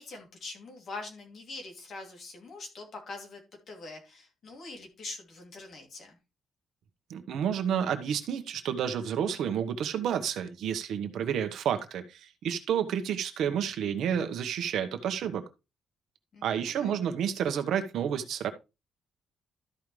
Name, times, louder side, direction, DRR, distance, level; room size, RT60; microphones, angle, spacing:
voice 1, 0.0-3.4 3.7-6.2 16.3-17.0, left 3 dB, 50° left, 2 dB, 2.8 m, -43 dB
voice 2, 7.1-15.4 16.4-18.5, right 8 dB, 75° right, 7 dB, 1.1 m, -30 dB
13.0 x 5.3 x 3.2 m, 0.27 s
cardioid pair, 165°, 0 cm